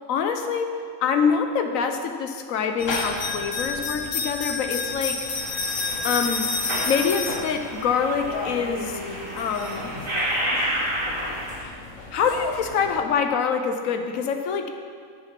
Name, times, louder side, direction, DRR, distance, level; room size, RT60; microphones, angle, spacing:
voice 1, 0.1-5.3 6.0-6.5 6.8-9.0 9.3-9.9 11.6-11.7 12.1-14.7, left 6 dB, 90° left, 6 dB, 1.2 m, -25 dB
sound 1, 2.8-13.0, left 4 dB, 70° left, 1.4 m, -31 dB
sound 2, 5.2-11.6, right 1 dB, 85° right, 2.5 m, -31 dB
9.0 x 6.9 x 5.9 m, 2.1 s
omnidirectional pair, 1.4 m